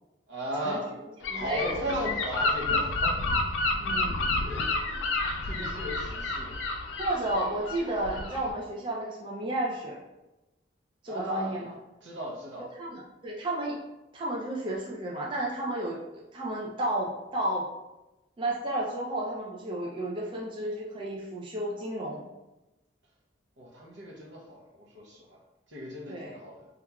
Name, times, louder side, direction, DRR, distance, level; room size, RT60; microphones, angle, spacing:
voice 1, 0.3-0.9 1.3-3.2 4.4-6.6 11.1-11.7 12.0-12.7 23.6-25.4 25.7-26.7, equal, 70° right, -1 dB, 0.6 m, -36 dB
Gull seagull / Wind, 1.2-8.5, left 2 dB, 65° left, 0.3 m, -30 dB
voice 2, 1.2-1.7 3.8-4.3 7.0-10.0 11.0-11.7 12.7-13.8 14.1-17.7 18.4-22.3 26.1-26.4, right 1 dB, 25° right, -3 dB, 0.3 m, -32 dB
2.9 x 2.3 x 2.2 m, 1.0 s
head